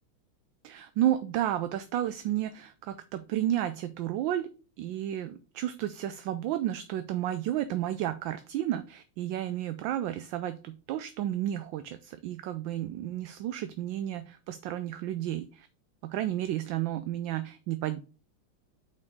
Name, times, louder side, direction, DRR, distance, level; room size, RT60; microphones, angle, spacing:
voice 1, 0.6-4.5 4.8-15.7 16.0-18.0, right 12 dB, 75° right, 11 dB, 1.2 m, -32 dB
6.0 x 4.6 x 4.6 m, 0.34 s
omnidirectional pair, 2.4 m